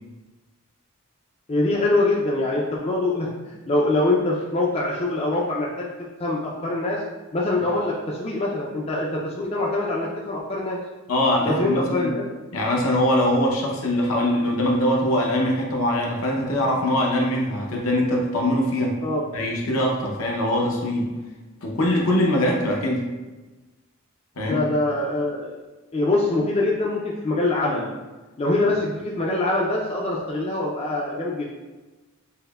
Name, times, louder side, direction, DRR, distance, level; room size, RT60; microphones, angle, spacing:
voice 1, 1.5-5.9 6.2-7.0 7.3-10.8 11.4-12.2 19.0-19.3 24.4-25.5 25.9-28.0 28.4-31.4, left 2 dB, 30° left, -3 dB, 0.4 m, -24 dB
voice 2, 11.1-12.1 12.5-19.0 19.3-21.1 21.6-23.0 24.4-24.6, left 1 dB, 70° left, -1 dB, 0.7 m, -22 dB
5.3 x 2.1 x 2.2 m, 1.2 s
head